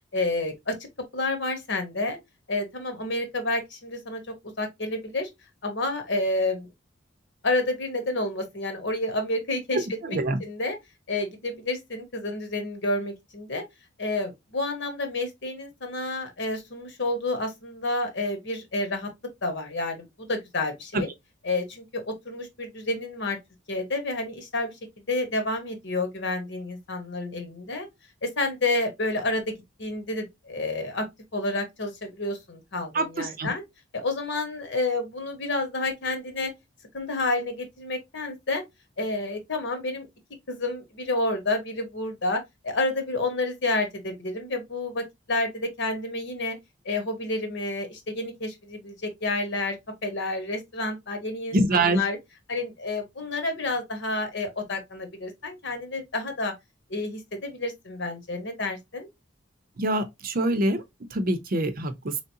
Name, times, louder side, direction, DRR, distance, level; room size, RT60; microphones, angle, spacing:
voice 1, 0.1-0.8 1.1-2.2 2.5-5.3 5.6-6.7 7.4-10.8 11.1-13.6 14.0-19.1 19.4-21.1 21.4-23.4 23.7-24.7 25.1-27.9 28.2-31.1 31.3-33.6 33.9-36.5 36.9-38.6 39.0-40.1 40.5-46.6 46.8-52.2 52.5-56.5 56.9-59.1, left 2 dB, 65° left, 1.3 m, -29 dB
voice 2, 9.7-10.4 20.9-21.0 32.9-33.5 51.5-52.0 59.8-60.8 61.1-62.2, right 2 dB, 50° right, 0.7 m, -25 dB
3.9 x 3.3 x 2.7 m
head